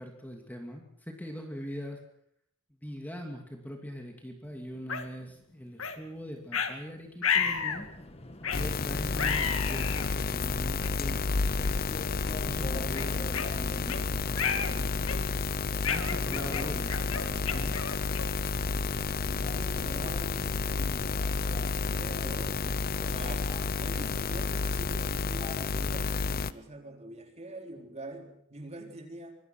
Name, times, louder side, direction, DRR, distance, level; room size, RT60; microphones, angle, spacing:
voice 1, 0.0-2.0 2.8-7.9 8.5-11.8 12.4-15.5 15.9-17.8, equal, 10° left, 2 dB, 2.7 m, -42 dB
sound 1, 4.9-5.0 5.8-6.0 6.5-6.7 7.2-7.8 8.4-8.7 9.2-10.1 10.8-10.9 11.6-11.8 12.3-12.4 12.9-14.0 14.4-14.7 15.1-15.4 15.8-18.4, left 6 dB, 75° left, 2.2 m, -32 dB
Subway metro underground, 7.3-26.5, left 2 dB, 30° left, 2.0 m, -47 dB
sound 2, 8.5-26.5, left 4 dB, 45° left, 0.8 m, -31 dB
voice 2, 19.2-21.3 21.9-23.5 23.8-29.3, right 1 dB, 30° right, 4 dB, 3.9 m, -45 dB
24.5 x 22.0 x 6.2 m, 0.70 s
head